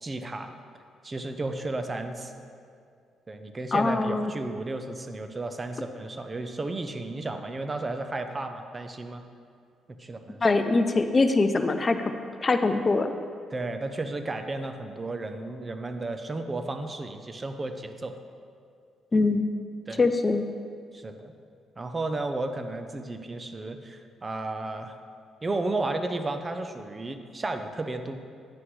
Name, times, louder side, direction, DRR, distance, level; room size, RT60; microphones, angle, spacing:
voice 1, 0.0-0.5 1.0-2.4 3.3-9.2 10.0-10.5 13.5-18.1 19.9-20.0 20.9-21.3 21.8-24.9 25.4-28.1, right 2 dB, 25° right, 7 dB, 0.7 m, -33 dB
voice 2, 3.7-4.3 10.4-12.1 12.4-13.1 19.1-19.5 20.0-20.5, left 3 dB, 30° left, 8 dB, 0.5 m, -23 dB
9.6 x 9.5 x 3.2 m, 2.3 s
cardioid pair, 90°, 0 cm